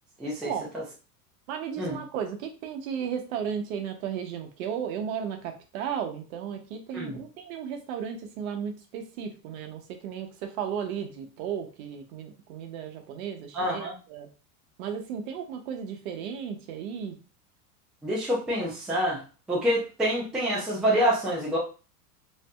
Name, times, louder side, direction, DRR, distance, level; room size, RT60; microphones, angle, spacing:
voice 1, 0.2-0.8 1.8-2.0 6.9-7.2 13.5-14.0 18.0-19.2 19.5-21.6, equal, ahead, -4 dB, 0.3 m, -27 dB
voice 2, 1.5-14.3 14.8-17.2, right 8 dB, 60° right, 5 dB, 0.8 m, -34 dB
2.7 x 2.5 x 2.3 m, 0.34 s
supercardioid pair, 120°, 46 cm